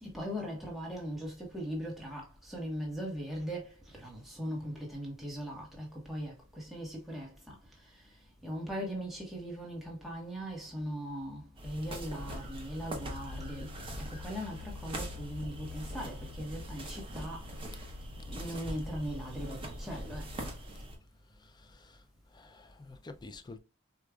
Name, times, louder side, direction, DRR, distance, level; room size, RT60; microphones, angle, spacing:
voice 1, 0.0-7.5 8.4-13.7 14.1-17.5 18.3-20.5, equal, ahead, 1.1 m, -39 dB
sound 1, 11.6-21.0, equal, 25° right, 0.9 m, -42 dB
voice 2, 21.3-23.6, left 3 dB, 20° left, 0.4 m, -50 dB
4.7 x 2.4 x 2.3 m
head